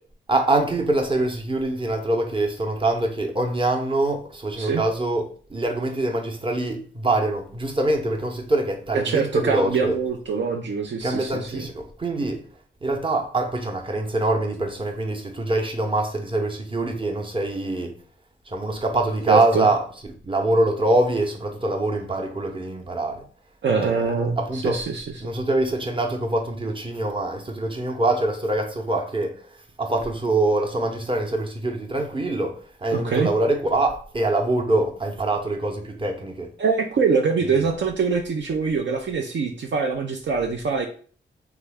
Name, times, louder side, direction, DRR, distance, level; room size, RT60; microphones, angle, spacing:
voice 1, 0.3-10.0 11.0-12.4 12.8-17.9 18.5-19.8 20.2-23.2 23.9-24.1 24.4-24.8 25.2-29.5 29.8-36.5 37.4-37.7, right 2 dB, 25° right, 0.8 m, -24 dB
voice 2, 9.0-11.7 19.3-19.7 23.6-25.3 32.9-33.3 36.6-40.9, right 5 dB, 65° right, 0.5 m, -24 dB
3.0 x 2.3 x 3.5 m
cardioid pair, 45°, 21 cm